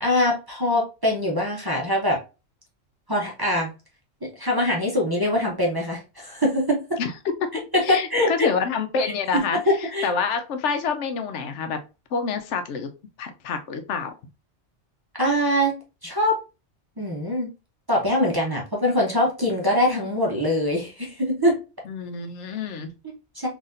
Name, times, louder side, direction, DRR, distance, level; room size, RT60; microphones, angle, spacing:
voice 1, 0.0-2.2 3.1-3.7 4.4-6.8 7.7-8.5 9.0-9.4 9.7-10.1 15.2-15.7 16.0-16.4 17.0-17.5 17.9-21.5 23.0-23.5, left 1 dB, 25° right, -2 dB, 0.7 m, -23 dB
voice 2, 7.5-11.8 12.1-12.9 13.2-14.1 21.9-22.9, left 5 dB, 85° left, 8 dB, 0.9 m, -27 dB
4.0 x 2.8 x 2.5 m, 0.30 s
omnidirectional pair, 1.2 m